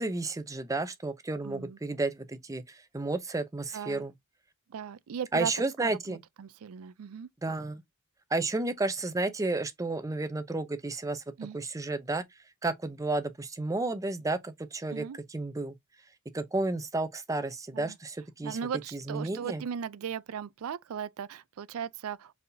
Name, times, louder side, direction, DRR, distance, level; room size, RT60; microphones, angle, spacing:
voice 1, 0.0-4.1 5.3-6.2 7.4-7.8 8.3-11.2 11.5-12.2 12.6-15.0 15.3-15.7 16.3-18.6 18.9-19.6, right 2 dB, 15° right, 0.5 m, -32 dB
voice 2, 1.4-1.8 3.7-4.0 4.7-5.5 5.8-7.3 11.4-11.6 14.9-15.2 17.7-18.0 18.4-22.3, right 7 dB, 65° right, 0.4 m, -37 dB
4.4 x 3.5 x 2.6 m
head